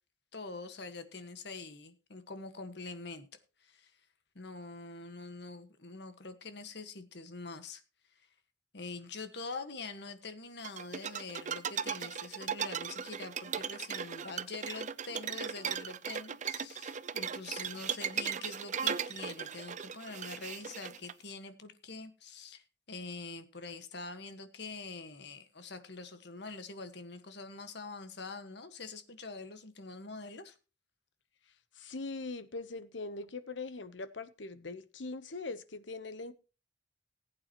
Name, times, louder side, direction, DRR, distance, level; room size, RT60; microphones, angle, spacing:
voice 1, 0.3-3.3 3.6-3.9 4.3-7.8 8.7-30.5, left 3 dB, 65° left, 1.6 m, -45 dB
sound 1, 10.6-21.1, right 7 dB, 45° right, 0.6 m, -37 dB
voice 2, 31.7-36.3, left 3 dB, 85° left, 1.0 m, -41 dB
19.5 x 8.6 x 3.0 m
head